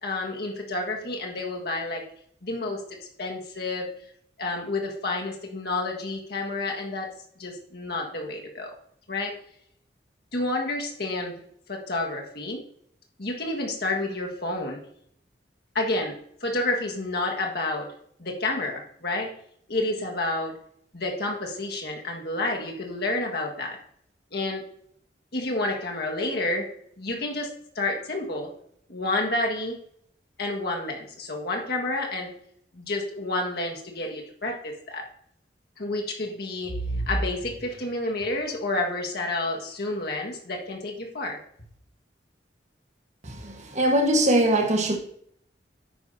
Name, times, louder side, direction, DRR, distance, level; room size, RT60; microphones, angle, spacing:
voice 1, 0.0-2.0 2.4-2.8 3.2-3.9 4.4-7.1 7.4-8.7 9.1-9.3 10.3-11.3 11.7-12.6 13.2-14.8 15.7-17.9 18.2-19.3 19.7-20.5 20.9-23.8 24.3-24.6 25.3-26.6 27.0-27.5 27.7-28.5 28.9-29.8 30.4-32.3 32.7-35.0 35.8-41.4, left 2 dB, 60° left, 1.7 m, -29 dB
voice 2, 43.4-45.0, right 1 dB, 40° right, 1.4 m, -21 dB
10.5 x 9.3 x 2.7 m
head